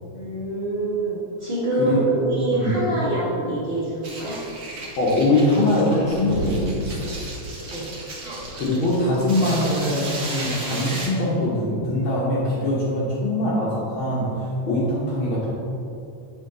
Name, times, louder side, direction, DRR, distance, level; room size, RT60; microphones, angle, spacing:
voice 1, 0.1-4.4 7.6-7.9, right 2 dB, 70° right, -9 dB, 0.5 m, -25 dB
sound 1, 4.0-11.1, right 1 dB, 50° right, 1.2 m, -33 dB
voice 2, 5.0-7.1 8.5-15.5, left 1 dB, 60° left, -6 dB, 1.4 m, -22 dB
8.3 x 5.4 x 3.8 m, 2.7 s
omnidirectional pair, 3.5 m